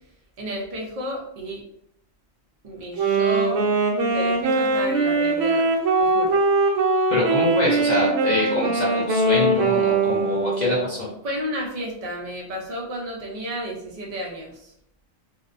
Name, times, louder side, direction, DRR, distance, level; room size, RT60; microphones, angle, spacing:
voice 1, 0.4-1.6 2.6-3.6 4.1-5.7 6.0-6.4 11.2-14.7, equal, 60° right, -1 dB, 0.4 m, -32 dB
Wind instrument woodwind instrument, 3.0-11.0, right 3 dB, 75° right, 0.9 m, -21 dB
voice 2, 7.1-11.1, left 1 dB, 65° left, -6 dB, 0.4 m, -24 dB
2.5 x 2.1 x 2.5 m, 0.73 s
omnidirectional pair, 1.4 m